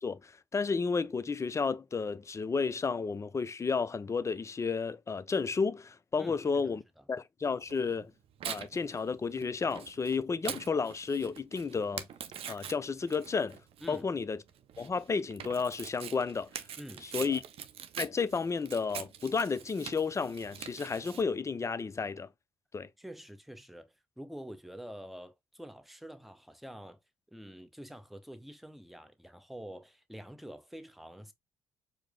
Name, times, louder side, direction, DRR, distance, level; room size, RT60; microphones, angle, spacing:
voice 1, 0.0-6.8 7.1-8.1 8.4-12.1 12.5-13.6 13.9-14.4 14.8-16.5 17.1-17.4 18.0-22.3 22.7-22.9, left 5 dB, 25° left, 0.4 m, -32 dB
voice 2, 6.2-6.7 7.0-7.1 13.8-14.1 16.8-17.4 23.0-27.0 27.3-31.3, equal, ahead, 0.7 m, -47 dB
Tearing, 7.7-21.2, right 9 dB, 55° right, 0.5 m, -44 dB
4.6 x 2.0 x 3.6 m
hypercardioid pair, 45°, 12 cm